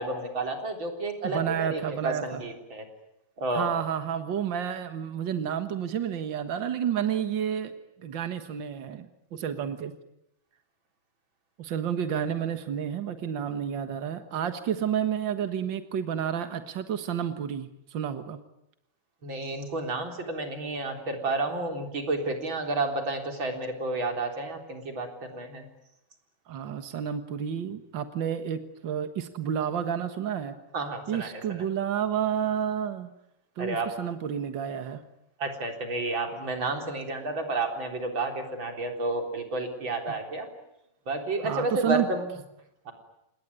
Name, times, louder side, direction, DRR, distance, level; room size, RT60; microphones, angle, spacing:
voice 1, 0.0-2.8 3.4-3.7 19.2-25.6 30.7-31.7 33.6-33.9 35.4-40.5 41.1-42.3 42.9-43.0, right 2 dB, 30° right, 5 dB, 4.3 m, -31 dB
voice 2, 1.2-2.4 3.5-7.7 8.0-9.9 11.6-18.4 26.5-30.6 31.1-33.1 33.6-35.0 41.4-42.1, right 8 dB, 60° right, 9 dB, 1.2 m, -30 dB
28.0 x 20.0 x 9.7 m, 0.85 s
omnidirectional pair, 4.2 m